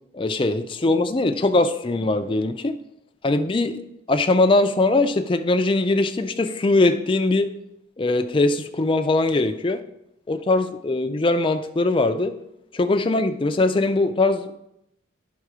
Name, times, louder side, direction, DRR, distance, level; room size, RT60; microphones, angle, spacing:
voice 1, 0.1-2.8 3.2-3.8 4.1-7.5 8.0-9.8 10.3-12.3 12.7-14.5, left 2 dB, 25° left, 8 dB, 0.4 m, -21 dB
10.5 x 3.7 x 4.9 m, 0.82 s
head